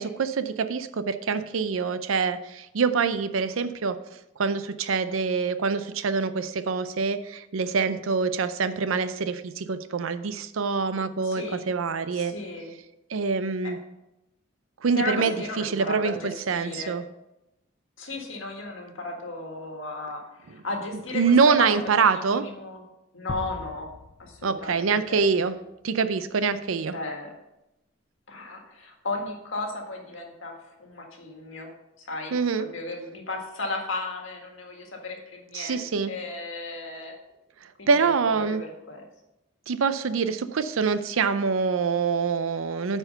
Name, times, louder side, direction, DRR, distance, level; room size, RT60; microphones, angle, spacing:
voice 1, 0.0-4.0 4.4-12.3 13.1-13.8 14.8-17.0 21.1-22.5 24.4-25.5 25.8-26.9 32.3-32.7 35.5-36.1 37.6-38.6 39.7-43.0, right 5 dB, 85° right, 12 dB, 0.5 m, -25 dB
voice 2, 11.2-11.6 12.1-12.7 14.9-16.9 18.0-21.7 22.0-22.8 23.1-23.9 24.2-25.2 26.9-27.3 28.3-31.7 32.0-37.1 37.8-38.1 38.4-39.0, left 2 dB, 75° left, 2 dB, 1.7 m, -35 dB
sound 1, 23.3-25.7, left 3 dB, 30° left, 0.4 m, -40 dB
8.9 x 4.5 x 5.3 m, 0.91 s
head